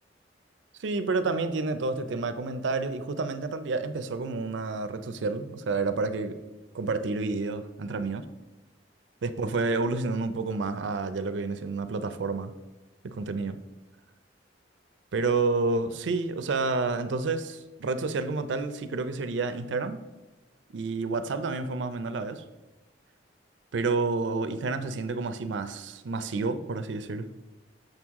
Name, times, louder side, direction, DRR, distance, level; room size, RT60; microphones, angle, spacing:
voice 1, 0.8-6.4 6.7-8.3 9.2-12.5 13.0-13.6 15.1-20.0 20.7-22.4 23.7-27.3, right 3 dB, 80° right, 9 dB, 0.5 m, -29 dB
6.5 x 6.2 x 3.6 m, 1.1 s
head